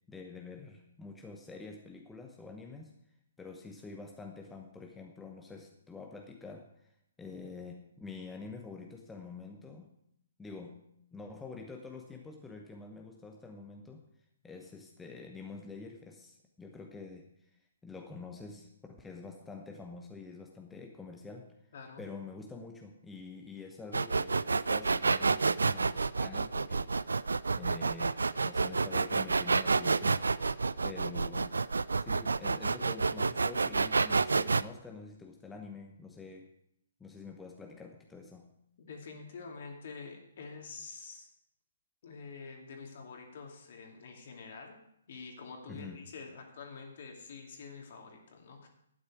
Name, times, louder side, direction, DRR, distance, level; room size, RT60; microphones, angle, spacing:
voice 1, 0.1-2.9 3.4-6.9 7.2-9.9 10.4-10.8 11.1-14.1 14.4-17.5 17.8-21.5 22.0-26.9 27.6-30.3 30.8-31.6 32.0-36.4 37.0-38.5 45.7-46.1, left 4 dB, 10° left, 2 dB, 0.9 m, -47 dB
voice 2, 21.7-22.0 31.2-31.4 38.8-41.3 42.0-44.7 45.1-48.7, left 4 dB, 50° left, 2 dB, 2.5 m, -47 dB
sound 1, 23.9-34.6, right 4 dB, 75° right, 0.3 m, -29 dB
11.5 x 9.4 x 4.9 m, 0.76 s
figure-of-eight pair, 130°, 0 cm